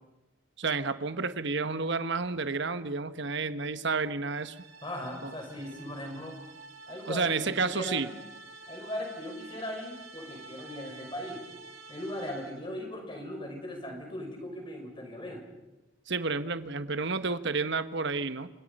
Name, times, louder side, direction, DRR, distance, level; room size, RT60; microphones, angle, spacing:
voice 1, 0.6-4.6 5.2-5.3 7.1-8.1 16.1-18.5, right 4 dB, 55° right, 11 dB, 1.2 m, -30 dB
sound 1, 4.3-12.7, right 3 dB, 75° right, 3.8 m, -49 dB
voice 2, 4.8-6.4 6.9-8.1 8.7-11.4 11.9-15.4, left 1 dB, 25° left, 3 dB, 5.4 m, -38 dB
29.5 x 26.0 x 5.4 m, 1.0 s
head